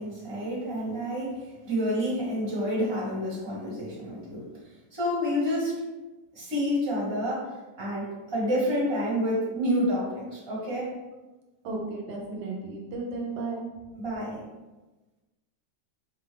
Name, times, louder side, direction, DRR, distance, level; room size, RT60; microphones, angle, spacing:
voice 1, 0.0-4.4 4.9-5.7 6.3-7.5 7.8-10.9 14.0-14.4, equal, 15° right, -7 dB, 1.3 m, -29 dB
voice 2, 11.6-13.7, right 3 dB, 85° right, -1 dB, 1.5 m, -34 dB
5.4 x 2.4 x 3.3 m, 1.1 s
omnidirectional pair, 2.1 m